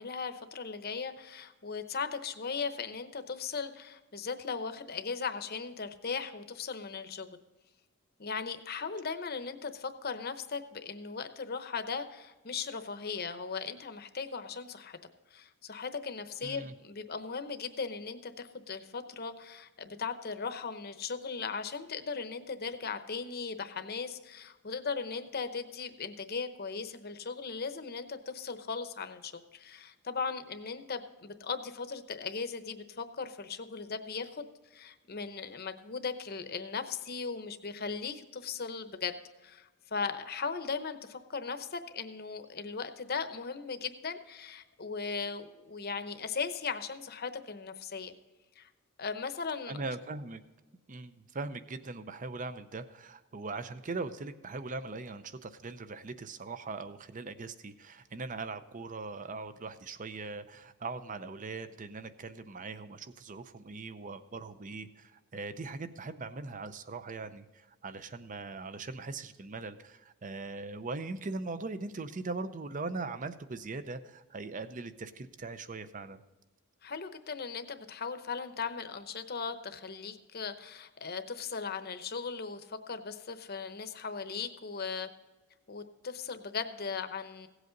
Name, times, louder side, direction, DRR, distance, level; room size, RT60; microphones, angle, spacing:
voice 1, 0.0-7.3 8.2-15.0 15.3-48.1 48.6-48.7 49.0-49.8 76.8-85.1 85.7-87.5, left 5 dB, 45° left, 9 dB, 0.8 m, -38 dB
voice 2, 16.4-16.7 49.7-50.4 50.9-76.2, right 3 dB, 35° right, 12 dB, 0.6 m, -40 dB
16.5 x 8.1 x 3.9 m, 1.2 s
head